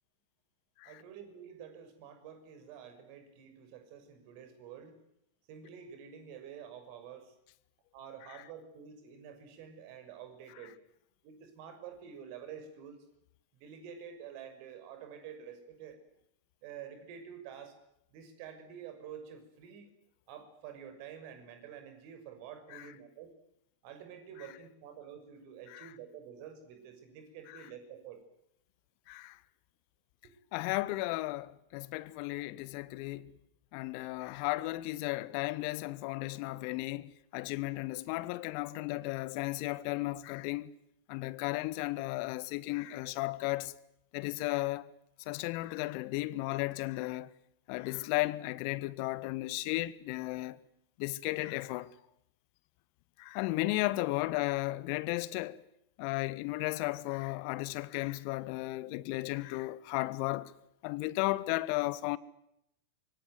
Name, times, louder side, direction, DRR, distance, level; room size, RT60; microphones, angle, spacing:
voice 1, 0.8-4.9 5.5-7.3 7.9-10.7 11.2-13.0 13.6-16.0 16.6-17.7 18.1-19.9 20.3-23.3 23.8-28.2, right 8 dB, 45° right, 6.3 m, -48 dB
voice 2, 30.5-33.3 33.7-40.7 41.1-43.7 44.1-44.8 45.3-47.3 47.7-50.6 51.0-51.9 53.2-55.6 56.0-60.5 60.8-62.2, left 20 dB, 45° left, 1.3 m, -34 dB
25.5 x 23.5 x 9.4 m
figure-of-eight pair, 90°, 0 cm